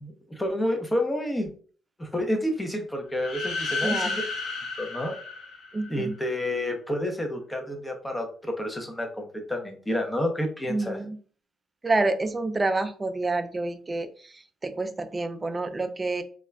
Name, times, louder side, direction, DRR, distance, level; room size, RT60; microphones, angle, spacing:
voice 1, 0.0-1.5 2.0-4.1 4.6-5.1 5.9-11.0, left 1 dB, 15° left, 3 dB, 0.7 m, -29 dB
sound 1, 3.1-6.1, left 4 dB, 80° left, 0.8 m, -32 dB
voice 2, 3.8-4.2 5.7-6.2 10.7-11.2 11.8-16.2, right 2 dB, 25° right, 9 dB, 0.3 m, -28 dB
2.4 x 2.1 x 3.3 m, 0.43 s
cardioid pair, 90°, 0 cm